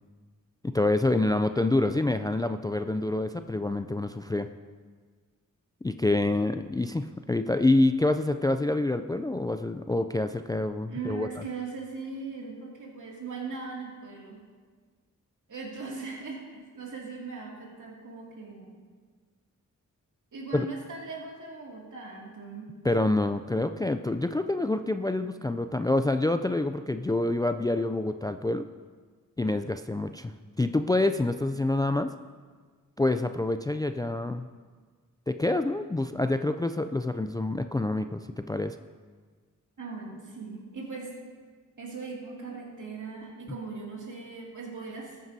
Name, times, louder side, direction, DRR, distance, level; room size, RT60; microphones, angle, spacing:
voice 1, 0.6-4.5 5.8-11.4 20.5-20.7 22.8-28.7 29.4-32.1 33.0-34.5 35.3-38.2 38.5-38.8, left 2 dB, 10° left, 9 dB, 0.3 m, -27 dB
voice 2, 10.9-14.4 15.5-18.7 20.3-22.7 39.8-41.1 41.8-45.3, right 4 dB, 70° right, -3 dB, 2.5 m, -39 dB
14.0 x 9.3 x 2.7 m, 1.5 s
cardioid pair, 60°, 32 cm